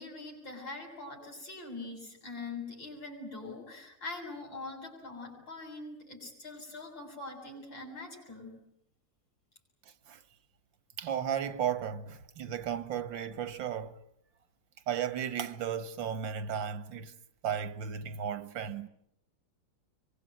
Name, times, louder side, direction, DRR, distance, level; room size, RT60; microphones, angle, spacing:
voice 1, 0.0-8.5, left 3 dB, 90° left, 8.7 m, -43 dB
voice 2, 11.0-14.0 14.9-17.1 17.4-18.9, right 8 dB, 85° right, 2.0 m, -34 dB
25.5 x 24.0 x 9.3 m
omnidirectional pair, 2.0 m